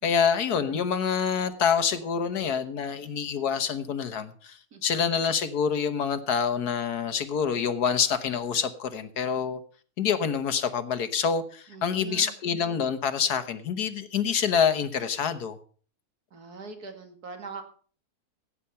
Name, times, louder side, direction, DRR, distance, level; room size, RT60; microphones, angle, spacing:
voice 1, 0.0-9.6 10.0-15.6, left 7 dB, 80° left, 1.7 m, -26 dB
voice 2, 11.7-12.3 16.3-17.6, right 4 dB, 75° right, 2.6 m, -42 dB
16.5 x 8.6 x 5.7 m
omnidirectional pair, 1.7 m